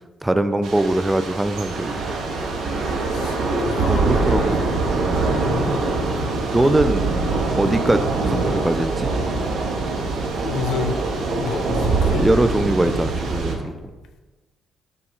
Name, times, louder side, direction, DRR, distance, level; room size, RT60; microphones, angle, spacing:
voice 1, 0.2-1.9 3.8-4.6 5.1-5.2 6.5-7.0 7.6-9.1 12.1-13.7, right 1 dB, 15° right, 10 dB, 0.3 m, -21 dB
Thunder / Rain, 0.6-13.5, right 3 dB, 65° right, 0.6 m, -23 dB
voice 2, 3.1-4.6 5.4-6.3 7.7-7.8 10.4-11.0 11.4-12.3, left 6 dB, 65° left, 6 dB, 0.4 m, -30 dB
5.1 x 2.3 x 4.3 m, 1.2 s
figure-of-eight pair, 40°, 0 cm